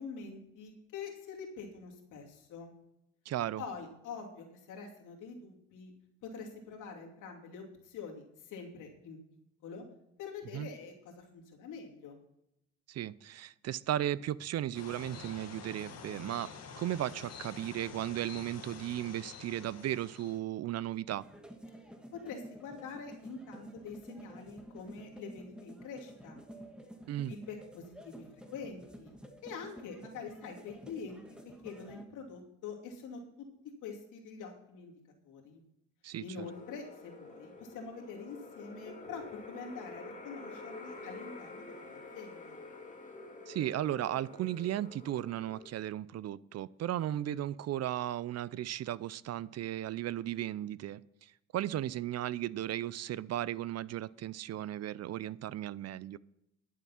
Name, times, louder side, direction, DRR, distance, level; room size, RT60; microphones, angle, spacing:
voice 1, 0.0-2.7 3.6-5.9 6.2-9.2 9.6-9.8 10.2-12.2 22.1-26.4 27.3-29.1 29.4-31.2 31.6-33.2 33.8-34.9 35.2-35.6 36.2-42.6, left 5 dB, 90° left, 2.6 m, -45 dB
voice 2, 3.3-3.6 10.5-10.7 12.9-16.5 16.8-21.2 27.1-27.3 36.0-36.5 43.5-56.2, right 12 dB, 55° right, 0.5 m, -36 dB
sound 1, 14.7-20.4, left 6 dB, 60° left, 1.8 m, -48 dB
sound 2, 21.2-32.0, right 1 dB, 5° right, 1.5 m, -51 dB
sound 3, 36.4-45.7, left 3 dB, 25° left, 2.2 m, -48 dB
11.0 x 7.4 x 5.7 m
cardioid pair, 90°, 30 cm